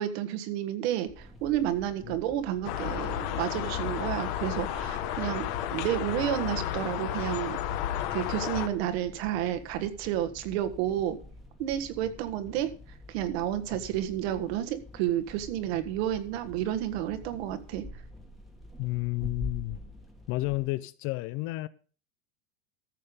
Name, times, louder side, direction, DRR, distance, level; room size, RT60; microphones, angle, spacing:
voice 1, 0.0-7.6 8.1-11.2 11.6-12.7 13.1-17.8, right 11 dB, 70° right, 1.7 m, -31 dB
sound 1, 1.1-20.7, left 1 dB, ahead, 1.6 m, -47 dB
sound 2, 2.6-8.7, left 12 dB, 55° left, 1.5 m, -32 dB
voice 2, 18.8-19.8 20.3-21.7, left 20 dB, 40° left, 0.5 m, -31 dB
14.0 x 6.7 x 5.3 m
cardioid pair, 160°, 33 cm